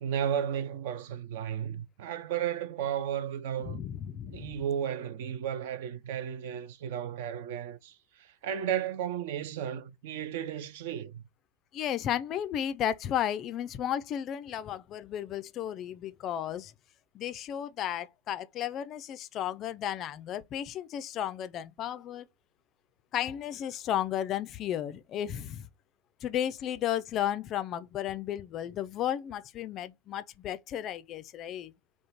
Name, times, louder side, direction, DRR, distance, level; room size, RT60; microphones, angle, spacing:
voice 1, 0.0-3.8 4.3-11.2, right 9 dB, 50° right, 0.5 m, -34 dB
voice 2, 3.6-4.5 11.7-16.7 17.1-22.3 23.1-25.7 26.2-31.7, left 10 dB, 30° left, 0.4 m, -34 dB
3.7 x 2.4 x 4.3 m
figure-of-eight pair, 90°, 0 cm